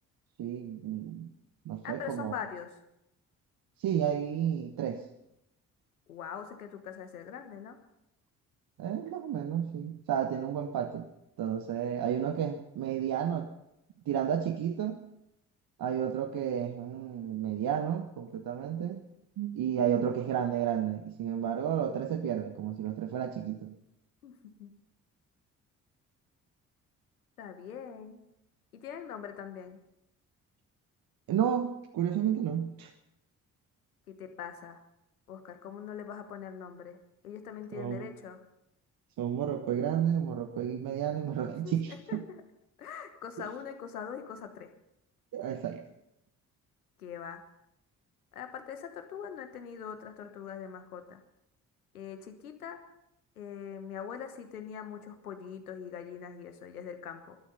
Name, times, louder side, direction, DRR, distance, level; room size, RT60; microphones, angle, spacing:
voice 1, 0.4-1.3 1.6-2.3 3.8-5.0 8.8-11.1 11.4-13.5 14.1-15.0 15.8-19.0 19.4-23.7 31.3-32.9 37.7-38.1 39.2-42.2 45.3-45.8, right 9 dB, 55° right, 6 dB, 1.3 m, -31 dB
voice 2, 1.8-2.8 6.1-7.8 24.2-24.7 27.4-28.2 28.7-29.8 34.1-34.8 35.3-37.0 37.2-38.4 41.5-42.4 42.8-44.7 47.0-47.4 48.3-51.2 51.9-52.8 53.4-57.4, left 8 dB, 85° left, 8 dB, 1.3 m, -42 dB
19.5 x 13.0 x 5.5 m, 0.85 s
figure-of-eight pair, 40°, 43 cm